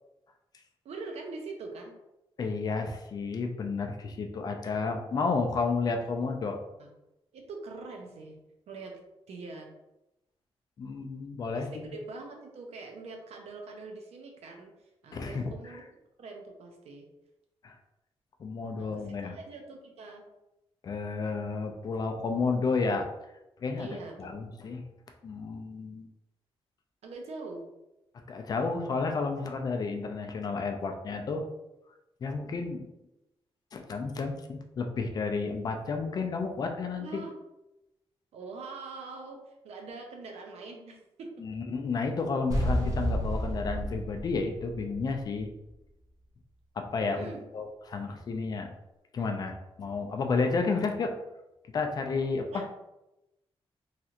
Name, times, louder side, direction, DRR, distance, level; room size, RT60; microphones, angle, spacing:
voice 1, 0.8-2.0 6.8-6.9 7.3-8.4 8.7-9.7 11.5-14.7 15.0-15.8 16.2-17.1 18.8-20.2 23.8-24.3 27.0-27.7 37.0-37.3 38.3-41.5 47.0-47.4 48.1-48.2 50.2-50.3 52.5-52.7, right 3 dB, 85° right, 2 dB, 0.6 m, -43 dB
voice 2, 2.4-6.6 10.8-11.9 15.1-15.5 17.6-17.7 18.4-19.4 20.8-23.1 23.6-24.8 25.2-26.1 28.3-31.4 32.2-32.9 33.7-37.2 41.4-45.5 46.8-48.7 49.1-51.1 51.7-52.6, left 4 dB, 40° left, 4 dB, 0.4 m, -31 dB
sound 1, 42.5-45.5, equal, 30° right, 0.5 m, -31 dB
3.2 x 2.8 x 2.4 m, 0.93 s
wide cardioid pair, 175°, 11 cm